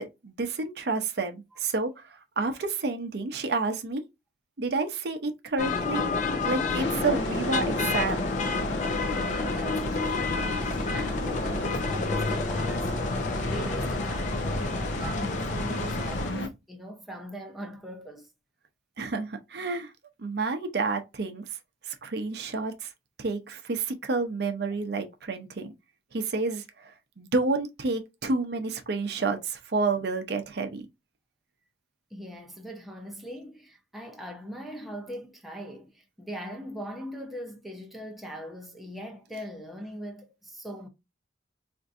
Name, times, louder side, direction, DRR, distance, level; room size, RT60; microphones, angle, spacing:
voice 1, 0.0-4.0 4.6-6.0 6.4-8.3 19.0-19.9 20.2-21.5 21.8-22.9 23.2-25.7 26.1-30.9, right 3 dB, 60° right, 0.6 m, -30 dB
sound 1, 5.6-16.3, left 3 dB, 40° left, 0.5 m, -29 dB
sound 2, 6.8-16.5, left 2 dB, 85° left, 0.7 m, -35 dB
voice 2, 9.2-13.1 13.5-18.3 32.1-40.9, equal, ahead, 0.6 m, -41 dB
4.3 x 2.6 x 2.5 m
head